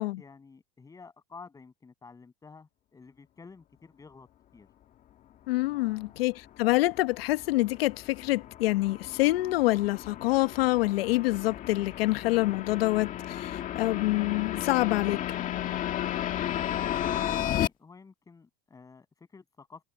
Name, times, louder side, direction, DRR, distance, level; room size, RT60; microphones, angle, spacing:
voice 1, 0.0-4.3 4.5-4.7 5.7-6.2 16.2-19.8, left 4 dB, 10° left, 7.1 m, -51 dB
voice 2, 5.5-15.4, left 19 dB, 85° left, 1.0 m, -26 dB
sound 1, 6.2-17.7, left 11 dB, 25° left, 1.8 m, -34 dB
supercardioid pair, 155°, 29 cm